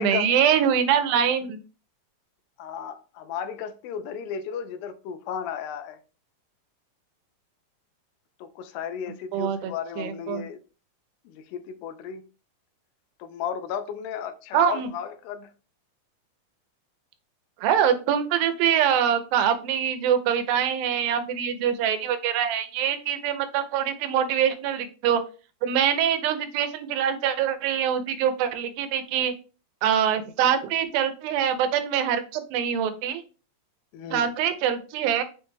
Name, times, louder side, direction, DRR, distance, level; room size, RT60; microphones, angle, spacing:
voice 1, 0.0-1.6 9.3-9.7 10.0-10.4 14.5-14.9 17.6-25.2 25.6-29.3 29.8-33.2 34.1-35.2, right 9 dB, 90° right, 2.4 m, -24 dB
voice 2, 2.6-6.0 8.4-10.6 11.3-12.2 13.2-15.5 33.9-34.3, left 7 dB, 90° left, 2.4 m, -34 dB
6.3 x 2.2 x 3.1 m
omnidirectional pair, 4.1 m